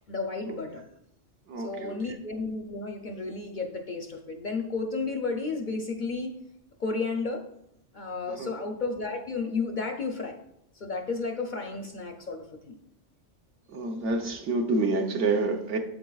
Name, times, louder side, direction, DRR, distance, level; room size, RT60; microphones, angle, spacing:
voice 1, 0.1-0.8 1.6-6.3 6.8-7.4 7.9-10.4 10.7-12.7, left 4 dB, 50° left, 0.6 m, -32 dB
voice 2, 1.5-2.0 8.3-8.5 13.7-15.8, right 3 dB, 70° right, 1.2 m, -28 dB
7.9 x 7.7 x 2.3 m
omnidirectional pair, 1.3 m